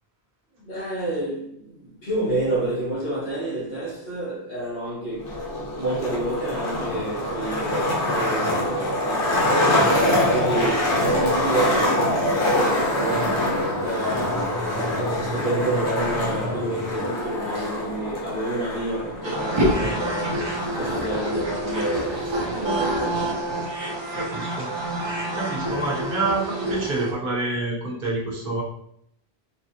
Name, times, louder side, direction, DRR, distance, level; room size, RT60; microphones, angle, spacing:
voice 1, 0.6-5.3 5.7-9.9 10.3-11.9 12.5-13.3 13.8-14.5 14.8-23.6, right 1 dB, 65° left, 1.4 m, -29 dB
Skateboard, 5.2-22.2, left 1 dB, 85° left, 1.2 m, -25 dB
sound 1, 12.0-17.1, equal, 85° right, 1.0 m, -36 dB
sound 2, 19.2-27.1, right 1 dB, 40° right, 0.4 m, -27 dB
voice 2, 24.1-25.0 25.3-28.6, right 2 dB, 55° right, 1.1 m, -28 dB
4.2 x 2.2 x 2.7 m
omnidirectional pair, 1.1 m